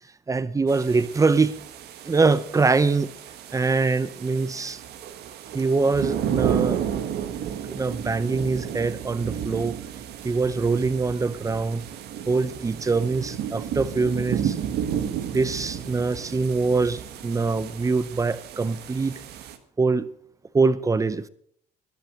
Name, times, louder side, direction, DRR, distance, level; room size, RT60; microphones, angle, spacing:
voice 1, 0.3-1.6 2.0-3.1 3.5-4.8 5.5-6.8 7.7-9.8 10.2-11.9 12.3-14.6 15.0-19.1 19.8-20.1 20.5-21.3, right 4 dB, 20° right, 0.7 m, -23 dB
sound 1, 0.7-19.6, right 9 dB, 75° right, 1.5 m, -32 dB
12.0 x 11.0 x 6.4 m
cardioid pair, 110°, 17 cm